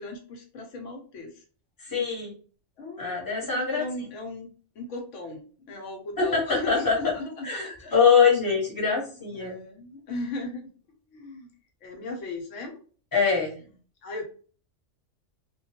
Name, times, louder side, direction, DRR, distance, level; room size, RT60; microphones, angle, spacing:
voice 1, 0.0-1.4 2.0-2.1 2.8-3.2 3.4-4.5 4.8-8.3 8.8-8.9 9.3-10.7 11.1-11.5 11.8-12.8 14.0-14.2, left 2 dB, 80° left, 3 dB, 1.0 m, -37 dB
voice 2, 1.9-2.3 3.0-3.8 6.2-6.9 7.4-7.6 7.9-9.5 13.1-13.5, left 5 dB, 20° left, -4 dB, 0.9 m, -23 dB
2.2 x 2.2 x 2.8 m, 0.41 s
omnidirectional pair, 1.3 m